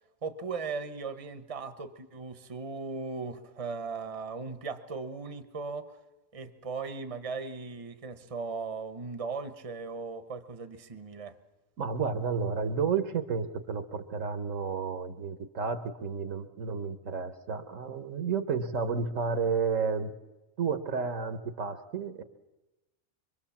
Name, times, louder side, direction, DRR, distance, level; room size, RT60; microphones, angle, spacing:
voice 1, 0.2-6.0 6.3-11.4, right 4 dB, 25° right, 1.1 m, -38 dB
voice 2, 11.8-20.1 20.6-22.2, right 5 dB, 65° right, 1.5 m, -31 dB
25.0 x 23.5 x 7.3 m
omnidirectional pair, 1.5 m